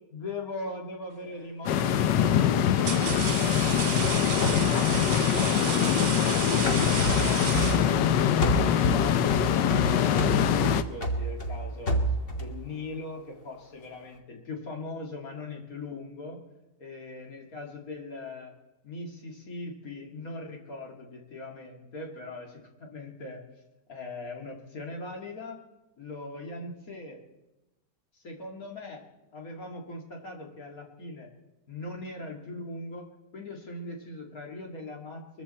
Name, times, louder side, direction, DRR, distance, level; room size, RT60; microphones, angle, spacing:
voice 1, 0.1-3.7 4.1-12.0 12.4-16.4 16.8-18.5 18.8-23.4 23.9-25.6 26.0-27.2 28.2-29.0 29.3-31.3 31.7-33.0 33.3-35.4, left 2 dB, 55° left, 0 dB, 2.8 m, -40 dB
sound 1, 1.2-1.5 2.3-8.3, right 8 dB, 75° right, 1.6 m, -34 dB
sound 2, 1.7-10.8, left 9 dB, 80° left, 1.4 m, -24 dB
sound 3, 3.1-6.3 6.7-8.1 8.4-12.6, right 1 dB, 35° left, 1.6 m, -30 dB
22.5 x 14.0 x 4.3 m, 1.0 s
omnidirectional pair, 1.9 m